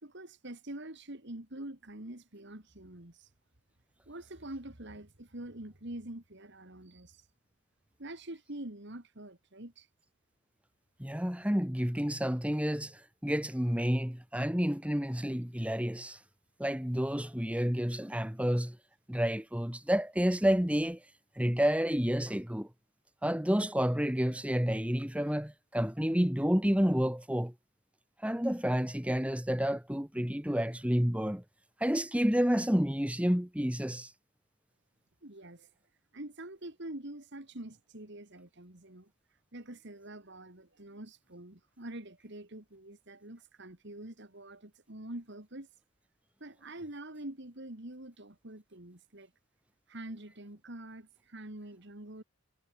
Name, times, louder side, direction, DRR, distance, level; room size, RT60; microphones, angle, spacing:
voice 1, 0.0-3.3 4.1-7.2 8.0-9.9 35.2-35.7 36.1-39.1 39.5-45.7 46.4-49.3 49.9-52.2, right 1 dB, 50° right, 2.4 m, -45 dB
voice 2, 11.0-16.2 16.6-18.8 19.1-21.0 21.4-22.7 23.2-27.5 28.2-31.4 31.8-34.1, equal, 5° right, 1.3 m, -30 dB
head